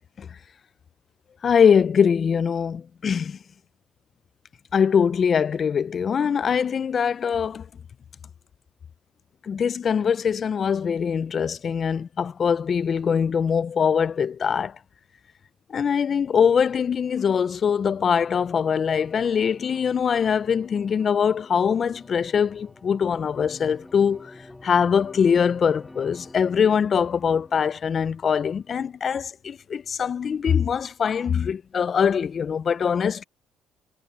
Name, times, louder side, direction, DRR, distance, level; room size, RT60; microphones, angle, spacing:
voice 1, 1.4-3.4 4.7-7.7 9.4-14.8 15.7-24.3 24.6-33.2, left 7 dB, 45° left, 0.5 m, -22 dB
sound 1, 17.6-28.6, left 2 dB, 10° left, 2.6 m, -49 dB
cardioid pair, 90°, 0 cm